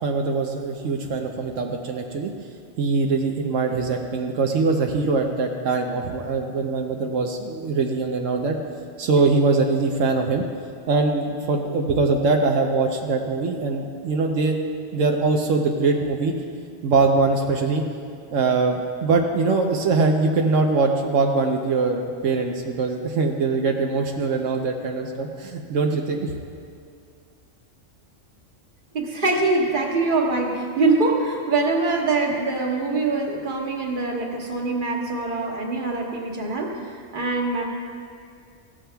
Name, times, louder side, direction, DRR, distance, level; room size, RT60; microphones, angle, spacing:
voice 1, 0.0-2.3 2.8-8.6 9.0-10.4 10.9-14.6 14.9-16.3 16.8-17.8 18.3-26.3, right 3 dB, 80° right, 2 dB, 1.1 m, -22 dB
voice 2, 28.9-37.6, right 3 dB, 45° right, -1 dB, 1.5 m, -23 dB
15.5 x 13.5 x 2.3 m, 2.3 s
omnidirectional pair, 1.3 m